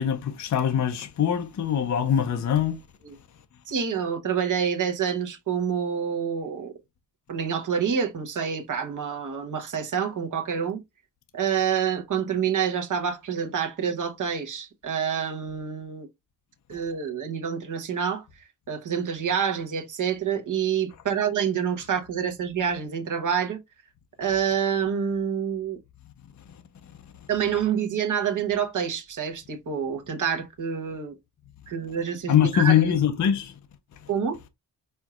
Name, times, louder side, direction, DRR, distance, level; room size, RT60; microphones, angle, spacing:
voice 1, 0.0-2.8 26.5-26.6 32.3-33.5, left 9 dB, 45° left, 0.5 m, -23 dB
voice 2, 3.7-6.7 7.3-10.8 11.3-16.1 16.7-18.2 18.7-23.6 24.2-25.8 27.3-31.2 31.7-33.0 34.1-34.4, right 7 dB, 45° right, 0.9 m, -27 dB
4.5 x 4.4 x 2.4 m
wide cardioid pair, 180°, 43 cm